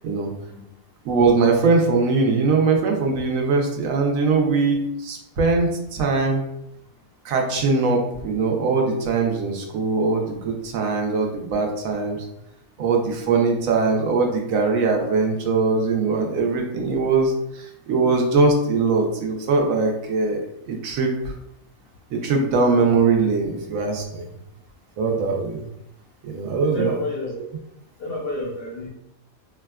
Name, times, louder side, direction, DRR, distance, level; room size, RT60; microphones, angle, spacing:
voice 1, 1.1-6.4 7.2-12.2 12.8-17.3 17.9-20.4 20.7-21.1 22.1-24.3 25.0-25.7 26.2-26.9, right 4 dB, 75° right, 2 dB, 1.0 m, -21 dB
voice 2, 26.6-27.4 28.0-28.9, left 2 dB, 60° left, -3 dB, 0.6 m, -29 dB
4.0 x 2.2 x 2.3 m, 0.82 s
omnidirectional pair, 1.4 m